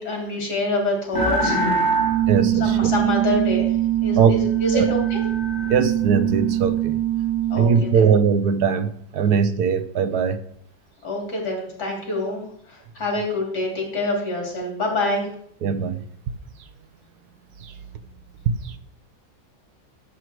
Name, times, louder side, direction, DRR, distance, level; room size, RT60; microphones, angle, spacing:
voice 1, 0.0-1.6 2.6-3.7 4.0-5.2 7.5-7.9 11.0-12.4 12.7-15.3, left 1 dB, 60° left, 0 dB, 4.1 m, -26 dB
sound 1, 1.1-7.8, right 8 dB, 10° left, 1.4 m, -22 dB
voice 2, 2.3-2.9 4.2-4.3 4.7-4.9 5.7-7.0 7.5-10.4 15.6-16.0 17.6-17.7 18.5-18.8, right 6 dB, 65° right, 11 dB, 1.3 m, -20 dB
13.0 x 7.8 x 4.6 m, 0.66 s
omnidirectional pair, 2.0 m